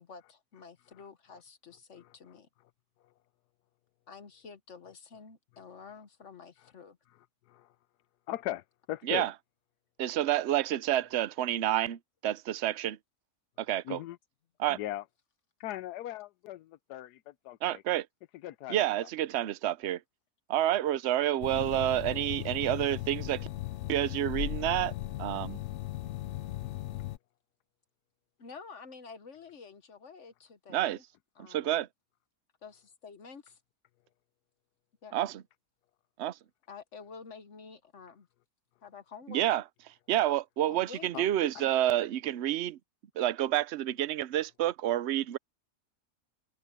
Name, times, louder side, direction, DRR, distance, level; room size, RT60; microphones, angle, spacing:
voice 1, 0.0-2.5 4.1-7.0 28.4-31.0 31.4-31.8 32.6-33.6 35.0-35.2 36.7-38.3 38.8-39.4 40.7-41.1 41.6-42.0, left 5 dB, 55° left, 1.3 m, -49 dB
voice 2, 8.3-9.3 13.8-14.2 14.7-15.0 15.6-17.8 18.4-18.9 21.4-21.7 41.1-41.3 41.5-41.7, left 13 dB, 85° left, 1.2 m, -39 dB
voice 3, 10.0-13.0 13.6-14.0 14.6-14.8 17.6-18.1 18.7-20.0 20.5-23.5 23.9-24.9 25.2-25.6 30.7-31.0 31.4-31.9 35.1-35.4 36.2-36.4 39.3-39.6 40.1-42.8 43.2-45.4, right 13 dB, 60° right, 0.7 m, -29 dB
sound 1, 21.4-27.2, left 14 dB, 70° left, 0.7 m, -37 dB
omnidirectional pair, 1.7 m